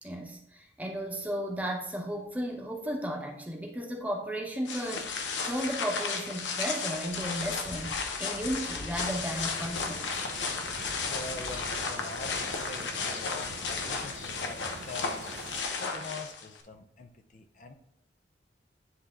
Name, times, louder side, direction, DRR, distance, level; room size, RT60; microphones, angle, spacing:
voice 1, 0.0-10.2, equal, 10° right, 0 dB, 0.9 m, -35 dB
sound 1, 4.7-16.6, left 4 dB, 90° left, 0.9 m, -34 dB
sound 2, 9.0-15.6, right 3 dB, 70° right, 0.6 m, -45 dB
voice 2, 11.1-15.3 15.8-17.7, left 3 dB, 45° left, 6 dB, 0.5 m, -44 dB
9.7 x 3.5 x 3.7 m, 0.80 s
head